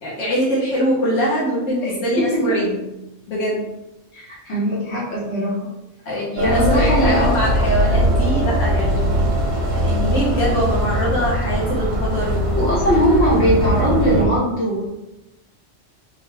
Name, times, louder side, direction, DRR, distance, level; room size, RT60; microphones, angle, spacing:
voice 1, 0.0-2.9 3.3-3.6 6.0-13.0 13.4-13.5, equal, 80° left, -6 dB, 1.3 m, -23 dB
voice 2, 1.8-2.6 4.1-5.7 6.1-7.4 12.5-14.8, equal, 60° left, -5 dB, 1.4 m, -20 dB
sound 1, 6.4-14.3, equal, 85° right, 1.1 m, -20 dB
4.0 x 2.4 x 3.3 m, 0.93 s
omnidirectional pair, 1.3 m